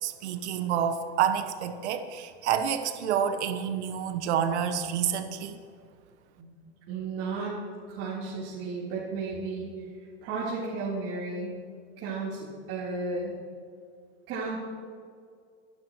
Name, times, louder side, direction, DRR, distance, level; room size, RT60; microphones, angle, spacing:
voice 1, 0.0-5.6, right 8 dB, 85° right, 8 dB, 1.2 m, -28 dB
voice 2, 6.9-7.6 7.9-11.5 12.0-13.3 14.3-14.6, right 3 dB, 45° right, -8 dB, 3.8 m, -34 dB
23.5 x 12.0 x 3.1 m, 2.2 s
supercardioid pair, 135°, 33 cm